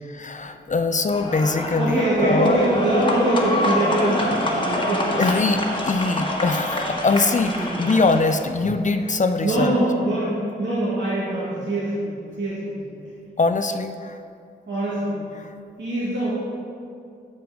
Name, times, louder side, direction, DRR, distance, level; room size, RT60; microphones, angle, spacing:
voice 1, 0.0-2.6 5.1-9.8 13.4-14.2 15.4-15.5, left 3 dB, 40° left, 8 dB, 0.4 m, -22 dB
sound 1, 1.1-8.5, left 1 dB, 25° left, 1.3 m, -26 dB
voice 2, 1.8-4.3 4.6-5.2 7.6-7.8 9.4-12.1 12.4-12.8 14.7-15.2 15.8-16.3, right 1 dB, 75° right, -9 dB, 2.0 m, -23 dB
6.8 x 6.0 x 4.9 m, 2.4 s
cardioid pair, 45°, 19 cm